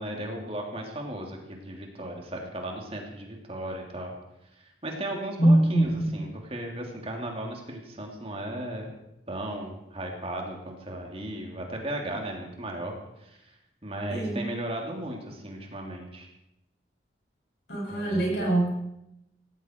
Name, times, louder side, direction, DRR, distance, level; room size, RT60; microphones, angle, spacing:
voice 1, 0.0-4.1 4.5-8.9 9.3-13.6 13.8-16.3 17.9-18.5, right 1 dB, 30° right, 1 dB, 3.1 m, -36 dB
voice 2, 5.4-6.2 14.1-14.4 17.7-18.7, right 1 dB, 60° left, -2 dB, 7.5 m, -23 dB
18.0 x 16.0 x 4.7 m, 0.85 s
head